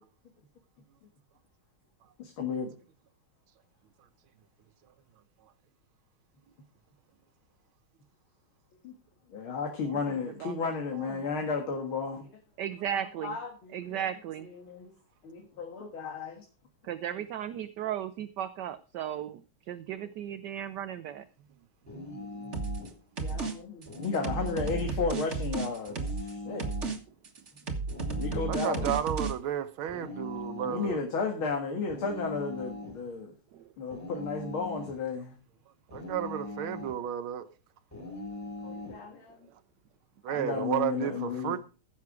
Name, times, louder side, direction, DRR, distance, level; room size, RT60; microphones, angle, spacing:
voice 1, 2.2-2.7 8.8-8.9 9.3-12.3 13.2-14.1 14.4-14.9 15.2-16.4 21.9-22.5 23.2-26.6 28.2-28.9 30.6-33.3 33.8-35.3 38.6-39.4 40.3-41.6, left 4 dB, 80° left, 2.6 m, -34 dB
voice 2, 9.8-10.5 10.9-11.2 12.6-13.4 13.7-14.5 16.8-19.4 19.7-21.3 23.3-23.4 33.5-33.7, right 10 dB, 65° right, 1.2 m, -36 dB
sound 1, 21.9-23.0 23.8-25.0 25.9-27.0 27.9-29.0 29.9-31.0 31.9-33.0 33.9-35.0 35.9-37.0 37.9-39.0, left 2 dB, 5° left, 3.5 m, -41 dB
sound 2, 22.5-22.9 23.2-23.5 23.8-26.3 26.6-27.0 27.2-29.3, right 4 dB, 35° right, 1.8 m, -33 dB
voice 3, 28.5-31.0 35.9-37.5 40.2-41.6, right 10 dB, 85° right, 1.6 m, -32 dB
15.5 x 7.2 x 4.7 m
omnidirectional pair, 2.3 m